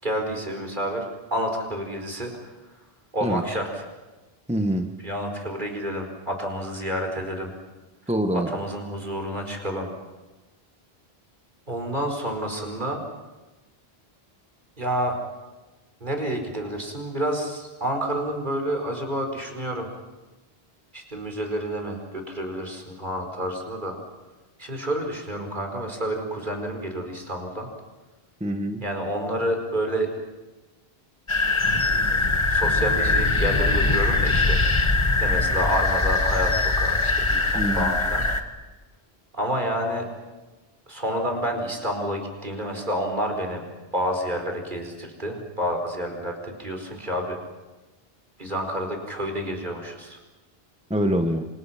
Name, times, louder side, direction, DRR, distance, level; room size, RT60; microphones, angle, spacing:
voice 1, 0.0-2.5 3.1-3.8 5.0-7.5 8.3-9.9 11.7-13.0 14.8-15.2 16.0-19.9 20.9-24.0 24.6-27.7 28.8-30.1 32.5-34.6 35.2-38.2 39.3-40.1 40.9-43.6 43.9-47.4 48.4-50.2, equal, 50° right, 3 dB, 4.9 m, -29 dB
voice 2, 4.5-4.9 8.1-8.5 28.4-28.8 37.5-37.9 50.9-51.5, right 1 dB, 5° right, 6 dB, 1.2 m, -24 dB
sound 1, 31.3-38.4, left 3 dB, 30° left, 1.6 m, -22 dB
27.5 x 27.0 x 5.9 m, 1.1 s
omnidirectional pair, 1.0 m